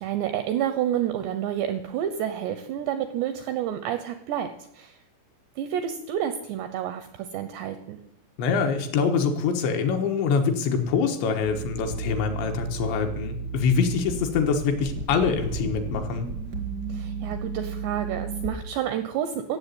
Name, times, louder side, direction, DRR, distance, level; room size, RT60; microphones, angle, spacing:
voice 1, 0.0-4.5 4.7-5.0 5.6-8.0 16.9-19.6, right 10 dB, 80° right, 9 dB, 2.5 m, -29 dB
voice 2, 8.4-16.3, left 5 dB, 70° left, 5 dB, 3.2 m, -24 dB
sound 1, 11.5-18.6, right 5 dB, 55° right, 1.1 m, -34 dB
15.0 x 7.8 x 8.3 m, 0.77 s
omnidirectional pair, 5.8 m